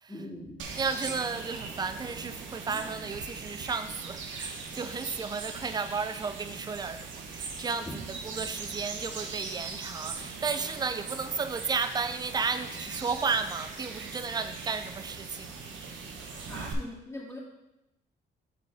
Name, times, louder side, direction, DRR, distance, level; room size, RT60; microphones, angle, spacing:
voice 1, 0.1-0.6 7.9-8.0 16.5-17.4, left 1 dB, 15° left, -4 dB, 2.1 m, -41 dB
sound 1, 0.6-16.7, right 4 dB, 70° right, 1.0 m, -40 dB
voice 2, 0.8-15.6, right 5 dB, 20° right, 10 dB, 0.5 m, -33 dB
8.4 x 4.3 x 3.5 m, 0.89 s
cardioid pair, 90°, 20 cm